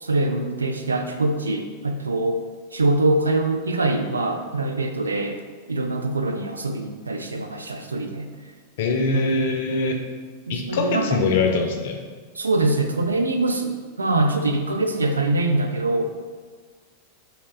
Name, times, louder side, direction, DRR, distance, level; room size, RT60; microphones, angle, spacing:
voice 1, 0.0-2.4 2.7-5.4 5.7-8.3 9.1-9.4 10.5-11.2 11.5-11.6 12.4-16.0, right 2 dB, 75° right, 5 dB, 0.3 m, -24 dB
voice 2, 8.8-10.0 10.5-12.0, left 3 dB, 55° left, 4 dB, 0.5 m, -23 dB
3.5 x 2.8 x 3.9 m, 1.5 s
figure-of-eight pair, 90°, 0 cm